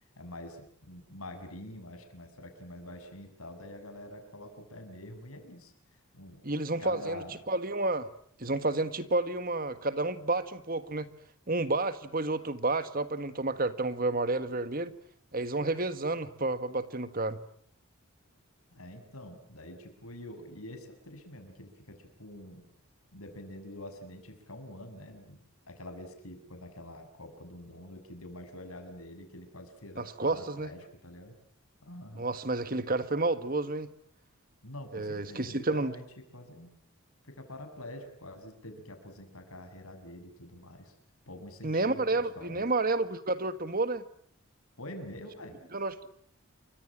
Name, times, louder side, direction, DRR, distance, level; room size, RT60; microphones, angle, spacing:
voice 1, 0.2-5.7 6.1-6.4 6.8-7.4 18.7-22.7 23.1-31.3 31.8-32.3 34.6-36.8 37.2-40.9 41.3-42.7 44.8-45.6, left 1 dB, 75° left, 7.3 m, -46 dB
voice 2, 6.4-8.1 8.4-11.1 11.5-14.9 15.3-17.4 30.0-30.7 32.2-33.9 34.9-35.9 41.6-44.0 45.7-46.0, right 2 dB, 40° right, 1.7 m, -30 dB
29.5 x 24.5 x 7.5 m
head